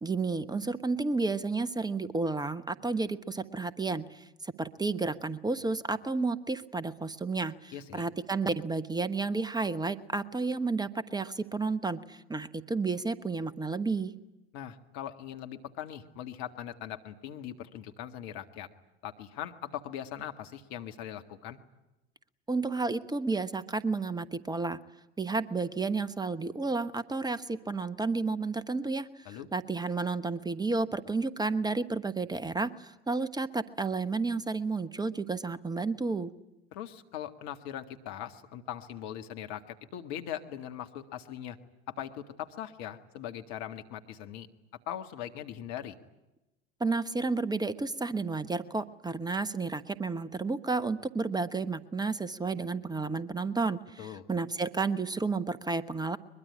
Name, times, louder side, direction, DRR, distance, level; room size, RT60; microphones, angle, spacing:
voice 1, 0.0-14.1 22.5-24.8 25.2-36.3 46.8-56.2, right 3 dB, 10° right, 15 dB, 1.1 m, -31 dB
voice 2, 7.7-8.0 14.5-18.7 19.0-21.6 29.3-29.5 36.7-41.6 41.9-44.5 44.9-46.0 54.0-54.2, left 10 dB, 55° left, 7 dB, 1.8 m, -40 dB
22.5 x 22.5 x 9.9 m, 0.99 s
figure-of-eight pair, 70°, 34 cm